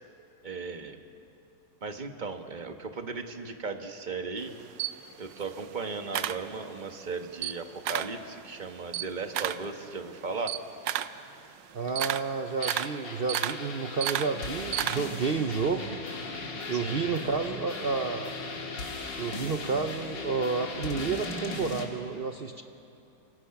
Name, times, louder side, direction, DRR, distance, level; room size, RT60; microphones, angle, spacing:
voice 1, 0.4-1.0 1.8-4.5 5.2-10.6 16.7-17.1, right 4 dB, 30° right, 6 dB, 1.2 m, -36 dB
Camera, 4.4-7.0 7.3-8.2 8.6-15.3, right 12 dB, 85° right, 1.4 m, -33 dB
voice 2, 11.7-16.0 16.7-18.3 19.2-22.6, right 4 dB, 55° right, 6 dB, 0.6 m, -30 dB
sound 1, 12.6-21.9, left 3 dB, 85° left, 2.7 m, -37 dB
26.0 x 25.0 x 5.9 m, 2.8 s
omnidirectional pair, 1.9 m